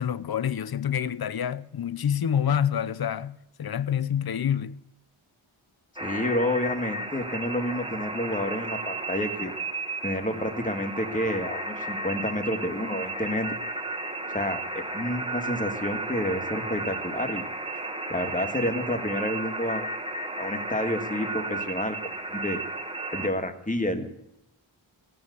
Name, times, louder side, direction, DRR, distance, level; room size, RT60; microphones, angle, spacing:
voice 1, 0.0-4.8, left 9 dB, 50° left, 0.7 m, -27 dB
voice 2, 6.0-9.5 10.0-13.5 14.3-17.4 18.1-19.9 20.4-22.6 23.1-24.1, left 1 dB, 15° left, 1.7 m, -29 dB
sound 1, 6.0-23.3, right 2 dB, 10° right, 1.3 m, -33 dB
17.0 x 7.8 x 8.0 m
wide cardioid pair, 100°, 48 cm